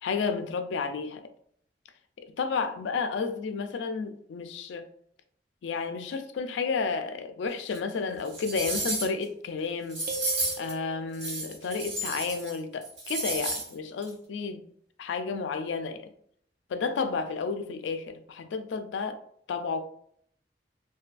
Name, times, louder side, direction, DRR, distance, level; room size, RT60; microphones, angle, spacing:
voice 1, 0.0-1.2 2.4-4.9 5.6-10.0 10.6-14.6 15.0-16.1 16.7-19.2 19.5-19.8, left 5 dB, 80° left, 0.3 m, -31 dB
sound 1, 7.7-7.8 8.3-9.2 9.9-10.7 11.1-12.5 12.8-13.7 14.0-14.1, right 2 dB, 70° right, 1.1 m, -32 dB
sound 2, 10.1-11.6, right 4 dB, 50° right, 0.3 m, -40 dB
2.7 x 2.3 x 2.4 m
head